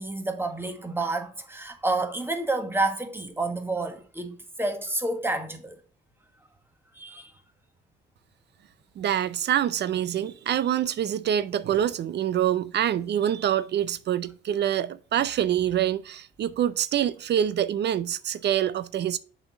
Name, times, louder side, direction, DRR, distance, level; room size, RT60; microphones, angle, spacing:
voice 1, 0.0-5.8 6.9-7.3, right 2 dB, 10° right, 1.4 m, -29 dB
voice 2, 9.0-19.2, right 10 dB, 60° right, 0.5 m, -26 dB
7.0 x 4.1 x 4.0 m
cardioid pair, 90°, 20 cm